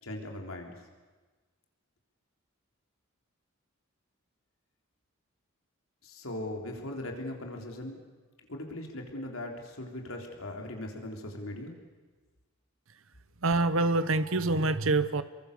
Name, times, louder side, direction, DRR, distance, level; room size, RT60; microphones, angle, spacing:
voice 1, 0.0-0.7 6.0-8.0 8.5-11.7, left 1 dB, 75° left, 2 dB, 3.8 m, -39 dB
voice 2, 13.4-15.2, right 2 dB, 70° right, 13 dB, 1.0 m, -26 dB
29.0 x 23.0 x 6.9 m, 1.3 s
head